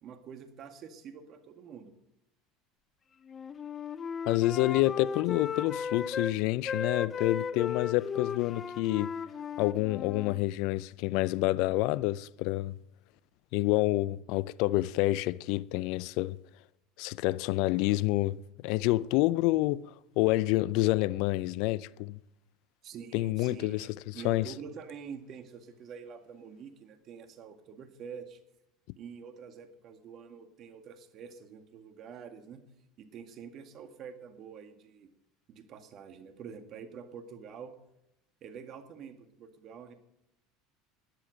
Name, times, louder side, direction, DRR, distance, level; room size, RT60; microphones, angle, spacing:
voice 1, 0.0-1.9 22.8-28.4 29.0-32.6 33.0-35.1 35.5-37.7 38.4-39.9, right 6 dB, 50° right, 2.0 m, -46 dB
Wind instrument woodwind instrument, 3.3-6.3 6.6-10.4, left 6 dB, 35° left, 0.7 m, -36 dB
voice 2, 4.3-9.1 9.6-12.8 13.5-16.4 17.0-18.4 18.6-22.2 23.1-24.5, left 18 dB, 65° left, 0.4 m, -28 dB
17.0 x 10.5 x 5.1 m
hypercardioid pair, 85°, 0 cm